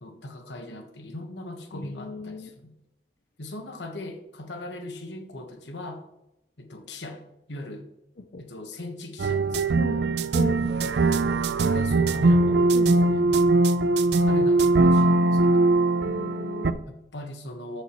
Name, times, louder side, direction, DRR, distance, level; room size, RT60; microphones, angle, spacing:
voice 1, 0.0-2.7 3.4-6.0 6.6-7.2 7.5-7.8 8.4-9.8 11.7-13.4 14.1-15.4 16.9-17.8, left 1 dB, 80° left, 5 dB, 1.3 m, -39 dB
voice 2, 1.7-2.5 8.2-8.4 9.8-10.8 12.7-13.0 16.0-16.8, left 3 dB, 55° left, 6 dB, 0.6 m, -38 dB
sound 1, 9.2-16.7, right 2 dB, 70° right, 0.5 m, -21 dB
13.5 x 6.7 x 3.1 m, 0.88 s
head